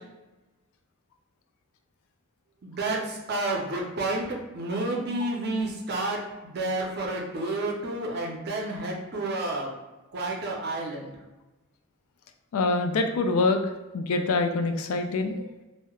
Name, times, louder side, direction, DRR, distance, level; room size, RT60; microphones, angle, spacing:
voice 1, 2.6-9.7 10.1-11.1, right 2 dB, 50° right, 0 dB, 0.5 m, -30 dB
voice 2, 12.5-13.6 13.9-15.5, left 3 dB, 80° left, 6 dB, 0.3 m, -25 dB
2.9 x 2.0 x 2.2 m, 1.1 s
head